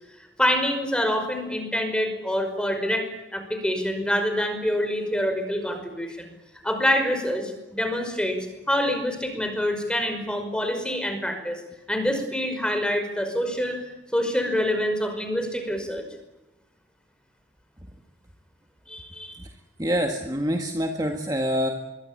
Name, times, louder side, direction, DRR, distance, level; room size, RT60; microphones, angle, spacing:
voice 1, 0.4-6.3 6.6-11.6 11.9-13.8 14.1-16.0 18.9-19.4, equal, 5° left, 6 dB, 5.4 m, -26 dB
voice 2, 19.8-21.7, equal, 20° right, 3 dB, 1.8 m, -26 dB
25.0 x 23.5 x 8.7 m, 1.0 s
head